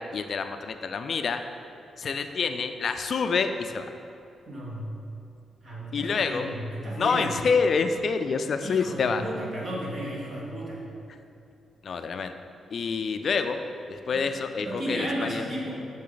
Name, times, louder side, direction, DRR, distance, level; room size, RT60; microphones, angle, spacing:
voice 1, 0.0-1.4 2.0-3.9 5.9-6.5 7.0-9.2 11.8-12.3 12.7-13.6 13.9-15.4, left 5 dB, 40° left, 8 dB, 0.3 m, -27 dB
voice 2, 4.5-4.9 5.6-7.4 8.6-10.8 14.1-14.3 14.6-15.7, equal, 35° right, -4 dB, 1.6 m, -34 dB
7.3 x 6.7 x 3.9 m, 2.6 s
wide cardioid pair, 175°, 0 cm